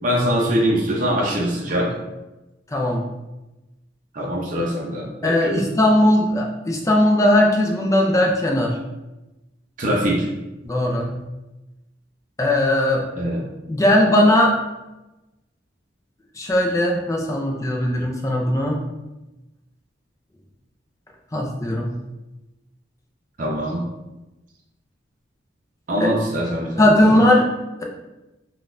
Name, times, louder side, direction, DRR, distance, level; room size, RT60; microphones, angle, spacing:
voice 1, 0.0-1.9 4.1-5.6 9.8-10.3 13.2-13.4 23.4-23.8 25.9-27.1, equal, 45° right, -3 dB, 0.6 m, -23 dB
voice 2, 2.7-3.1 5.2-8.8 10.6-11.2 12.4-13.0 13.7-14.5 16.4-18.8 21.3-22.0 26.0-26.1 26.8-27.5, left 1 dB, 15° left, 0 dB, 0.4 m, -18 dB
3.8 x 2.3 x 2.5 m, 1.0 s
head